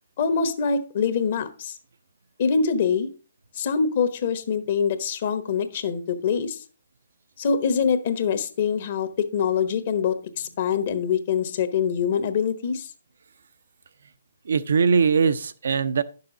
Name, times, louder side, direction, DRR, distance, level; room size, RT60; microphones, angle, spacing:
voice 1, 0.2-1.8 2.4-3.1 3.6-6.6 7.4-12.9, left 6 dB, 50° left, 10 dB, 1.2 m, -24 dB
voice 2, 14.4-16.0, right 5 dB, 70° right, 14 dB, 0.6 m, -21 dB
10.5 x 6.8 x 3.9 m, 0.37 s
figure-of-eight pair, 135°, 0 cm